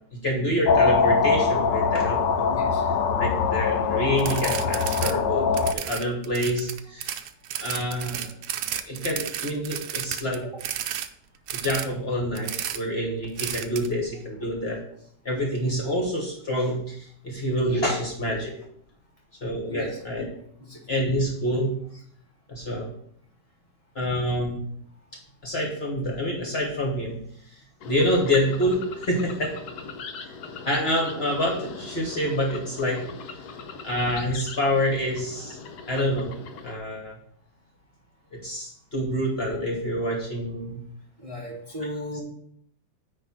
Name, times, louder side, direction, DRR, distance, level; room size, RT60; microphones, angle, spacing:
voice 1, 0.1-2.5 3.2-7.1 7.6-8.3 8.9-10.5 11.5-14.8 15.2-18.5 19.4-20.2 20.9-21.8 22.5-22.9 23.9-24.6 25.4-27.2 27.5-29.6 30.2-30.3 30.6-33.0 33.8-35.6 35.9-36.3 36.6-37.2 38.3-40.8, equal, 40° left, 0 dB, 1.4 m, -27 dB
sound 1, 0.7-5.7, left 5 dB, 85° left, 1.2 m, -23 dB
voice 2, 2.5-2.8 10.4-10.5 19.7-20.0 20.6-20.8 41.2-42.2, equal, 20° right, -3 dB, 1.3 m, -35 dB
sound 2, 4.2-5.1 5.4-11.1 11.5-11.9 12.3-12.8 13.4-13.9, right 10 dB, 70° right, 1.1 m, -32 dB
sound 3, 27.8-36.8, left 5 dB, 65° left, 1.2 m, -40 dB
9.5 x 3.2 x 6.1 m, 0.68 s
omnidirectional pair, 1.9 m